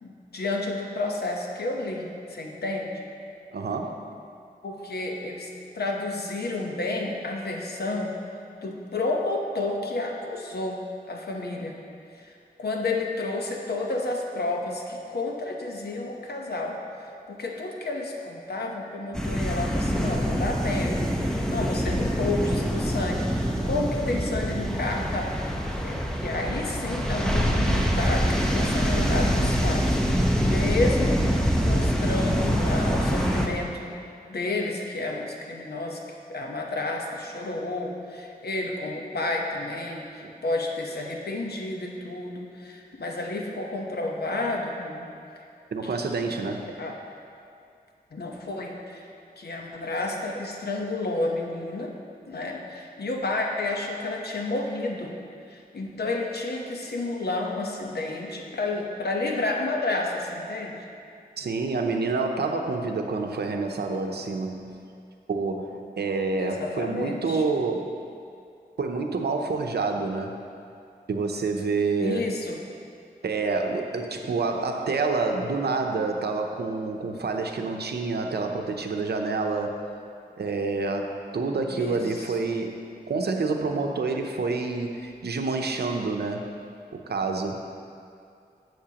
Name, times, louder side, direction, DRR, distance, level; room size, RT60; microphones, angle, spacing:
voice 1, 0.0-3.0 4.6-5.5 5.7-8.1 8.6-11.8 12.2-12.3 12.6-16.8 17.3-25.5 25.8-31.2 31.6-34.0 34.3-36.0 36.3-45.1 46.2-47.0 48.1-49.0 49.4-51.9 52.3-55.1 55.5-60.8 66.4-67.4 72.0-72.6 81.7-82.2, left 2 dB, 80° left, 0 dB, 1.0 m, -31 dB
voice 2, 3.5-4.0 40.2-40.3 45.7-46.7 61.4-64.7 65.3-67.9 68.8-70.4 71.1-72.3 73.2-79.8 80.4-82.8 83.1-86.5 86.9-87.7, right 3 dB, 90° right, 4 dB, 0.7 m, -28 dB
sound 1, 19.1-33.5, equal, 5° left, 0.9 m, -25 dB
11.5 x 7.9 x 2.9 m, 2.4 s
wide cardioid pair, 80°, 16 cm